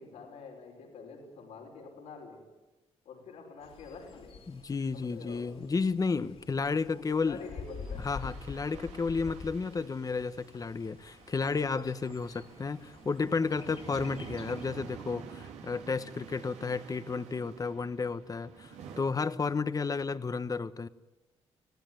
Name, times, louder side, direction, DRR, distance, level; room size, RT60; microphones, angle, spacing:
voice 1, 0.0-2.4 3.1-4.5 4.9-5.6 6.7-8.1, left 4 dB, 85° left, 1 dB, 5.4 m, -47 dB
Bird, 3.6-14.6, left 5 dB, 65° left, 3.3 m, -48 dB
voice 2, 4.5-7.4 8.0-20.9, left 4 dB, 35° left, 12 dB, 1.2 m, -32 dB
sound 1, 7.2-19.0, right 7 dB, 90° right, 2.1 m, -49 dB
26.0 x 16.5 x 9.5 m, 1.1 s
cardioid pair, 75°, 11 cm